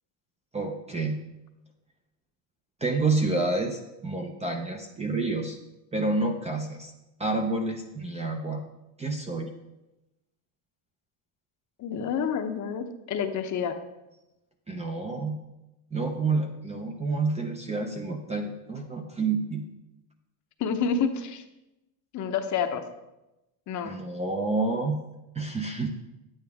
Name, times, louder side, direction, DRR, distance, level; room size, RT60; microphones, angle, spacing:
voice 1, 0.5-1.2 2.8-5.6 5.9-6.9 7.2-8.6 9.0-9.5 14.7-15.4 15.9-19.6 23.8-25.0 25.3-25.9, right 3 dB, 15° right, 4 dB, 0.5 m, -29 dB
voice 2, 11.8-13.8 20.6-21.4 22.1-22.8 23.7-23.9, left 6 dB, 40° left, 7 dB, 0.8 m, -28 dB
9.2 x 8.8 x 3.5 m, 0.96 s
cardioid pair, 150°, 46 cm